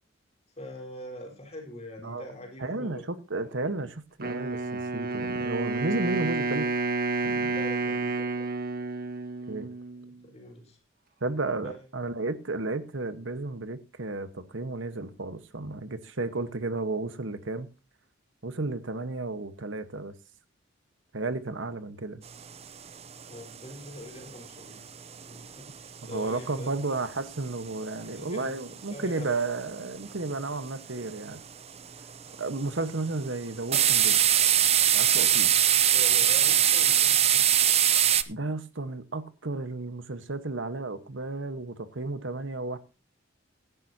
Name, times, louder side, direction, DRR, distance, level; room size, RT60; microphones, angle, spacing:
voice 1, 0.6-3.1 7.4-8.5 10.0-10.8 11.6-11.8 23.3-24.8 25.3-27.0 27.9-28.5 28.9-29.3 35.9-37.8, left 1 dB, 35° left, 4.4 m, -43 dB
voice 2, 2.6-6.7 7.2-7.6 9.5-9.7 11.2-17.7 18.4-20.1 21.1-22.2 26.1-31.4 32.4-34.2 34.9-35.5 38.3-42.8, right 3 dB, 75° right, 1.3 m, -33 dB
Wind instrument woodwind instrument, 4.2-10.2, right 3 dB, 50° right, 1.5 m, -30 dB
bensonhall basement, 22.4-22.5 22.9-23.0 23.2-23.5 23.9-24.7 25.0-26.2 26.5-28.0 28.4-28.6 28.8-28.9 29.3-29.7 30.0-30.5 31.0-31.4 31.8-32.4 32.8-33.1 33.7-38.2, right 10 dB, 30° right, 0.6 m, -22 dB
17.5 x 10.5 x 2.8 m
head